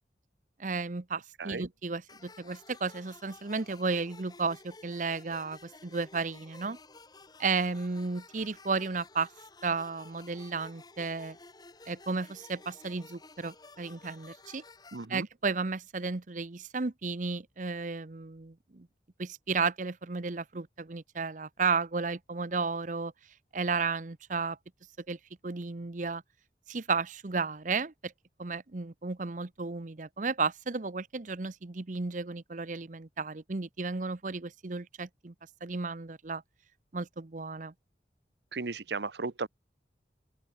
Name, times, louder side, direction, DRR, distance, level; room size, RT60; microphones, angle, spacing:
voice 1, 0.6-6.8 7.4-9.3 9.6-11.4 11.9-14.6 15.1-18.9 19.2-23.1 23.5-24.6 25.1-25.2 25.4-26.2 26.7-28.1 28.4-35.3 35.6-36.4 36.9-37.7, right 4 dB, 45° right, 0.8 m, -33 dB
sound 1, 2.1-15.0, left 3 dB, 25° left, 1.4 m, -53 dB
voice 2, 14.9-15.3 38.5-39.5, right 3 dB, 75° right, 1.0 m, -35 dB
open air
head